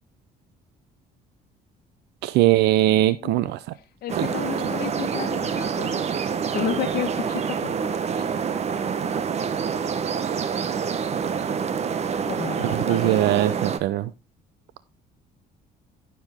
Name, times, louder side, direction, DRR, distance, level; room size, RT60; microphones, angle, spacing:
voice 1, 2.2-3.7 4.1-4.3 12.6-14.1, right 15 dB, 80° right, 15 dB, 0.7 m, -21 dB
voice 2, 4.0-6.1 6.5-8.3 12.2-13.3, left 11 dB, 60° left, 1 dB, 1.5 m, -32 dB
sound 1, 4.1-13.8, right 6 dB, 40° right, 1.0 m, -27 dB
11.5 x 7.0 x 3.6 m, 0.26 s
cardioid pair, 110°, 17 cm